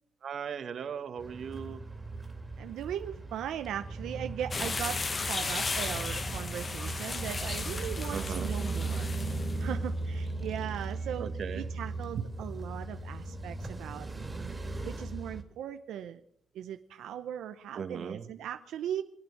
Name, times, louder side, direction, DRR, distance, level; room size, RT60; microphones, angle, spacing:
voice 1, 0.2-1.8 8.1-8.5 11.2-11.7 12.1-12.2 17.7-18.3, right 7 dB, 55° right, 9 dB, 1.5 m, -37 dB
sound 1, 1.2-15.4, right 2 dB, 15° right, 2.6 m, -37 dB
voice 2, 2.6-9.1 9.6-11.3 11.6-14.1 14.8-16.2 16.5-19.0, right 10 dB, 90° right, 8 dB, 0.7 m, -38 dB
sound 2, 4.5-9.6, left 4 dB, 30° left, 0.9 m, -35 dB
26.0 x 8.9 x 6.0 m, 0.69 s
cardioid pair, 115°, 0 cm